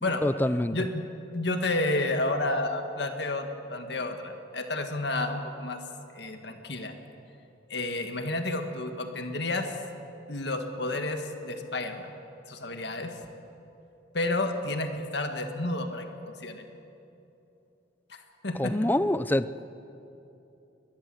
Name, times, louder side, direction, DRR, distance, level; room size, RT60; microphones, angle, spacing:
voice 1, 0.2-0.8 18.6-19.6, left 1 dB, 10° left, 14 dB, 0.5 m, -26 dB
voice 2, 0.7-1.1 1.3-5.8 6.1-6.9 7.7-9.7 10.3-12.1 12.5-13.2 14.1-16.1 16.4-16.6 18.1-18.2 18.4-18.9, left 2 dB, 60° left, 6 dB, 1.9 m, -30 dB
21.5 x 21.0 x 7.9 m, 2.9 s
head